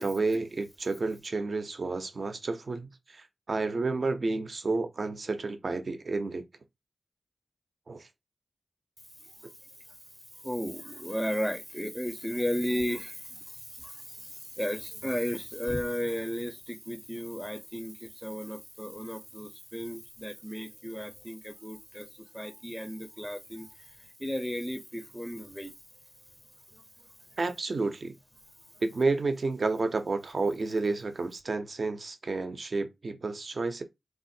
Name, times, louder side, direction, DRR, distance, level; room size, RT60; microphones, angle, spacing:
voice 1, 0.0-6.4 7.9-8.1 27.4-28.1 28.8-33.8, right 3 dB, 60° right, 0.6 m, -30 dB
voice 2, 10.4-13.1 14.6-17.9 18.2-22.1 22.3-23.7 24.2-25.7, equal, ahead, 0.5 m, -34 dB
3.4 x 2.4 x 2.7 m
cardioid pair, 45°, 0 cm